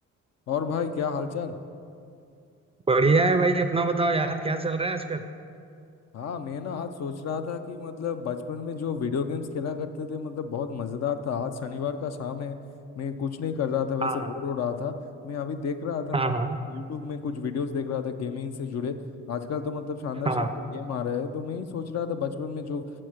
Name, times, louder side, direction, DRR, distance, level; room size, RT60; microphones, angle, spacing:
voice 1, 0.5-1.6 6.1-12.6 13.0-15.0 15.2-16.3 16.7-19.0 19.3-22.8, left 6 dB, 60° left, 9 dB, 0.6 m, -31 dB
voice 2, 2.9-5.2 14.0-14.3 16.1-16.5 20.3-20.5, right 3 dB, 20° right, 8 dB, 0.4 m, -24 dB
7.4 x 5.9 x 6.4 m, 2.4 s
cardioid pair, 90°, 30 cm